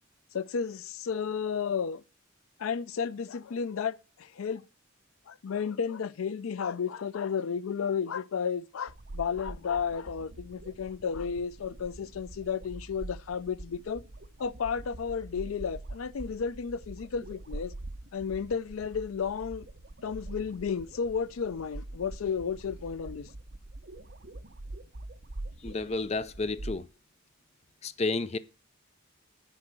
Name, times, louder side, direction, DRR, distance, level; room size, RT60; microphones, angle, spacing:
voice 1, 0.3-2.0 2.6-4.6 5.3-14.0 14.4-17.7 18.1-19.7 20.0-23.3, left 6 dB, 85° left, 0.4 m, -33 dB
sound 1, 8.9-26.8, right 2 dB, 50° right, 0.8 m, -44 dB
voice 2, 25.6-26.9 27.8-28.4, left 3 dB, 30° left, 0.5 m, -31 dB
9.8 x 4.5 x 7.5 m
head